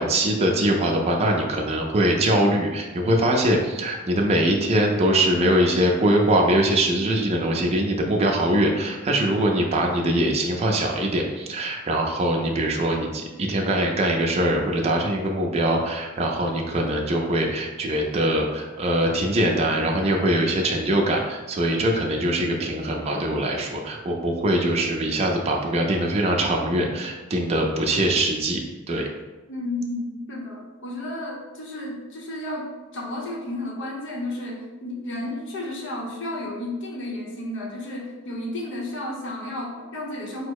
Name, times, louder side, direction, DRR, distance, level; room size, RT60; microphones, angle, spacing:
voice 1, 0.0-29.1, right 1 dB, 30° right, 0 dB, 0.5 m, -22 dB
voice 2, 29.5-32.7 32.9-40.5, left 1 dB, 60° left, -1 dB, 0.9 m, -32 dB
4.4 x 2.1 x 4.6 m, 1.2 s
head